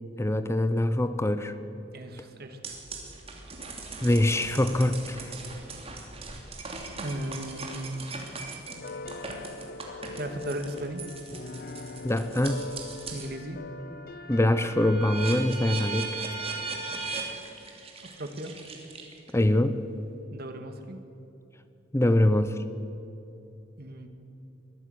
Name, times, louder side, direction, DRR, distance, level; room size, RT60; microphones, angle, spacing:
voice 1, 0.2-1.5 4.0-5.3 12.0-12.7 14.3-16.2 19.3-19.8 21.9-22.6, left 1 dB, 15° left, 11 dB, 0.6 m, -24 dB
voice 2, 1.9-2.8 7.0-8.1 10.2-11.0 13.1-13.6 18.0-18.5 20.3-21.0 23.8-24.1, right 1 dB, 55° right, 6 dB, 2.0 m, -36 dB
sound 1, 2.6-13.3 13.8-19.4, right 4 dB, 30° right, 3.0 m, -39 dB
sound 2, 8.7-15.4, left 3 dB, 50° left, 0.7 m, -42 dB
22.5 x 14.0 x 8.0 m, 2.9 s
head